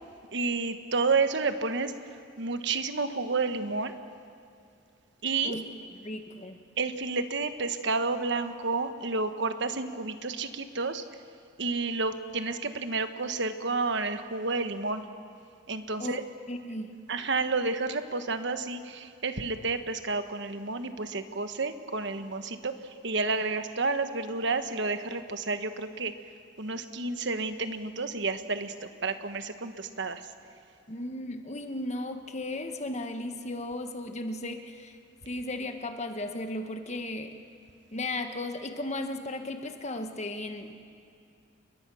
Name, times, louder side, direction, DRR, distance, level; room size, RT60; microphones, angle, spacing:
voice 1, 0.3-1.9 2.4-4.0 5.2-5.5 6.8-11.0 11.6-15.0 15.7-16.2 17.1-22.7 23.0-26.1 26.6-30.2, right 3 dB, 65° right, 9 dB, 1.3 m, -30 dB
voice 2, 6.0-6.6 16.0-16.9 30.9-35.0 35.2-37.4 37.9-40.7, left 1 dB, 35° left, 6 dB, 1.5 m, -35 dB
29.5 x 21.5 x 6.3 m, 2.5 s
head